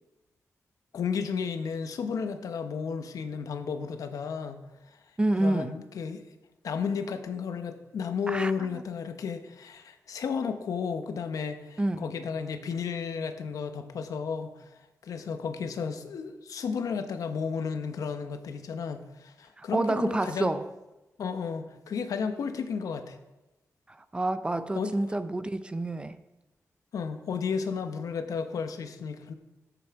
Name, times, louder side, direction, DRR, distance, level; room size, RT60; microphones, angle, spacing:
voice 1, 0.9-4.6 5.4-6.2 6.6-14.7 15.0-20.5 21.2-23.2 24.7-25.0 26.9-29.3, left 6 dB, 90° left, 0.9 m, -33 dB
voice 2, 5.2-5.8 8.3-8.7 11.8-12.1 19.6-20.7 23.9-26.2, right 2 dB, 15° right, 0.5 m, -28 dB
11.5 x 8.1 x 4.7 m
wide cardioid pair, 135°, 6 cm